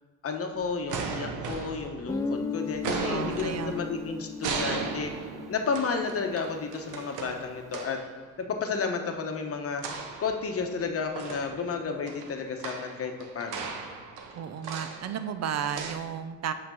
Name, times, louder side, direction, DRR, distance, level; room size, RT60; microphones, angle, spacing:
voice 1, 0.2-5.1 5.5-8.0 8.4-9.8 10.2-13.7, left 5 dB, 50° left, 4 dB, 1.0 m, -32 dB
sound 1, 0.5-2.4 2.7-8.1 9.8-10.8 11.2-15.9, right 5 dB, 90° right, 0.9 m, -37 dB
Guitar, 2.1-6.7, left 5 dB, 10° left, 0.3 m, -36 dB
voice 2, 3.1-3.9 14.3-16.5, right 8 dB, 60° right, 10 dB, 0.6 m, -33 dB
5.9 x 5.1 x 6.3 m, 1.3 s
cardioid pair, 90°, 30 cm